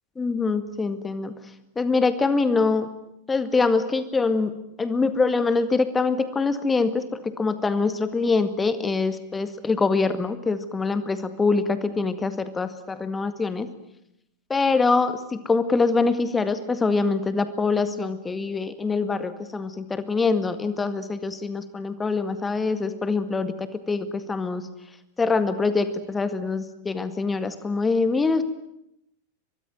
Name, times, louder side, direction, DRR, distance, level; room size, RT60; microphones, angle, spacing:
voice 1, 0.2-1.3 1.8-2.9 3.3-4.5 4.8-13.7 14.5-24.7 25.2-28.4, left 4 dB, 15° left, 11 dB, 2.0 m, -24 dB
24.0 x 22.5 x 9.4 m, 0.81 s
figure-of-eight pair, 90°, 0 cm